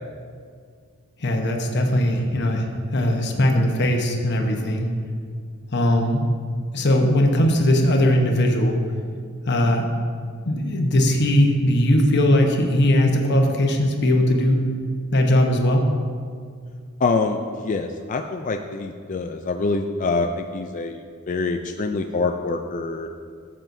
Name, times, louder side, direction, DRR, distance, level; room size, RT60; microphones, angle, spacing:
voice 1, 1.2-2.7 2.9-4.9 5.7-6.2 6.7-8.8 9.5-9.9 10.4-14.7 15.1-15.9, left 1 dB, 55° left, 2 dB, 1.0 m, -19 dB
voice 2, 17.0-23.1, left 3 dB, 35° left, 4 dB, 0.4 m, -25 dB
13.5 x 7.4 x 2.7 m, 2.1 s
head